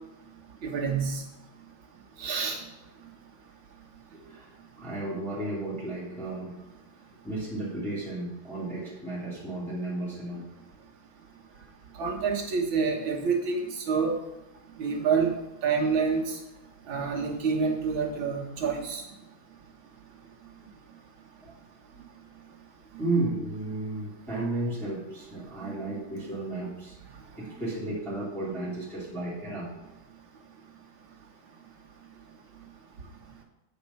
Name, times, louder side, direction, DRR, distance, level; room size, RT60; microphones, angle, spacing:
voice 1, 0.6-1.2 2.2-2.6 12.0-14.2 14.8-15.3 15.6-16.4 16.9-19.0, right 5 dB, 80° right, 0 dB, 2.1 m, -27 dB
voice 2, 4.1-4.5 4.8-6.5 7.2-10.5 11.5-11.7 20.6-20.7 21.4-21.5 21.9-22.0 23.0-26.9 27.3-29.7, right 2 dB, ahead, -8 dB, 2.3 m, -33 dB
8.4 x 5.3 x 5.6 m, 0.96 s
omnidirectional pair, 2.2 m